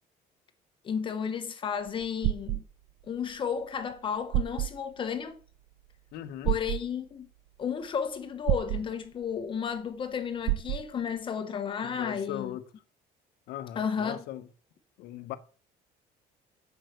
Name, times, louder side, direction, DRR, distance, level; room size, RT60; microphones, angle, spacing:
voice 1, 0.8-2.6 3.1-5.4 6.4-7.3 7.6-12.5 13.8-14.2, left 7 dB, 30° left, 1.0 m, -33 dB
sound 1, 1.9-2.6 3.9-4.0 4.3-4.7 6.4-6.8 8.5-8.8 10.5-10.8, right 19 dB, 85° right, 0.5 m, -28 dB
voice 2, 6.1-6.6 11.8-12.6 13.5-14.5 15.0-15.4, left 12 dB, 70° left, 1.1 m, -38 dB
8.1 x 5.8 x 7.9 m
cardioid pair, 160°, 17 cm